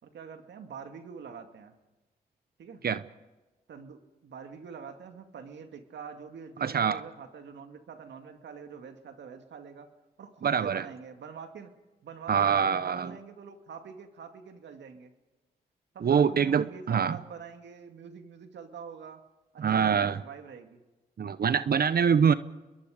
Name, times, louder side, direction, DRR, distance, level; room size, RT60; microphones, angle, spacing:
voice 1, 0.0-1.8 2.6-2.8 3.7-9.9 10.2-11.7 12.0-15.1 15.9-19.2 19.5-20.8, right 6 dB, 75° right, 6 dB, 2.3 m, -45 dB
voice 2, 6.6-7.0 10.4-10.8 12.3-13.1 16.0-17.2 19.6-20.2 21.2-22.3, right 7 dB, 60° right, 14 dB, 0.9 m, -24 dB
29.5 x 21.5 x 5.1 m, 1.1 s
supercardioid pair, 45°, 18 cm